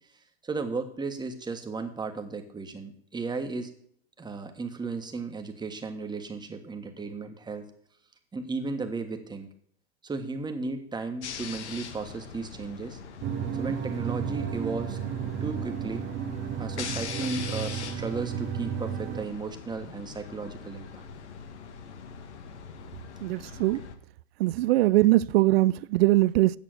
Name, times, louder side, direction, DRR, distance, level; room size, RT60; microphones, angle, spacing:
voice 1, 0.4-3.7 4.2-7.6 8.3-9.5 10.0-13.0 13.5-15.0 15.4-16.1 16.6-21.1 23.7-23.9, right 4 dB, 10° right, 1.5 m, -35 dB
sound 1, 11.2-23.9, left 6 dB, 80° left, 1.6 m, -42 dB
sound 2, 13.2-19.3, right 8 dB, 30° right, 0.9 m, -33 dB
voice 2, 23.2-23.8 24.4-26.5, right 17 dB, 60° right, 0.4 m, -21 dB
9.1 x 6.7 x 7.8 m
hypercardioid pair, 115°, 34 cm